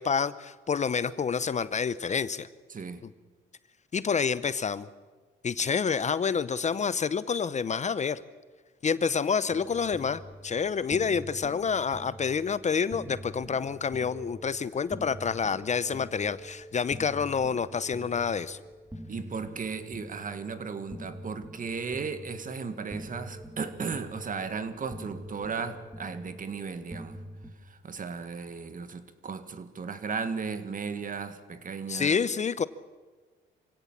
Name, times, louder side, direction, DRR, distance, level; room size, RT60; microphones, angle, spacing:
voice 1, 0.0-2.5 3.0-3.1 3.9-4.9 5.4-8.2 8.8-18.6 31.9-32.6, left 6 dB, 35° left, 16 dB, 0.7 m, -28 dB
voice 2, 2.7-3.0 19.1-27.2 27.8-32.2, right 5 dB, 45° right, 10 dB, 1.9 m, -35 dB
sound 1, 9.5-27.5, equal, 10° right, 2.5 m, -45 dB
26.0 x 16.5 x 7.4 m, 1.4 s
cardioid pair, 90°, 20 cm